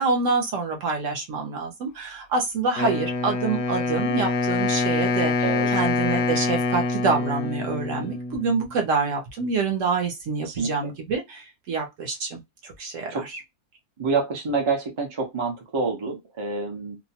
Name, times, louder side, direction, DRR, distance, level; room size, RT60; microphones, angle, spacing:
voice 1, 0.0-5.3 5.7-13.4, right 4 dB, 60° right, 1.0 m, -26 dB
Wind instrument woodwind instrument, 2.8-8.7, left 3 dB, 70° left, 0.9 m, -25 dB
voice 2, 10.4-10.9 13.1-13.2 14.0-17.0, right 4 dB, 35° right, 0.5 m, -27 dB
2.7 x 2.1 x 2.7 m
omnidirectional pair, 1.6 m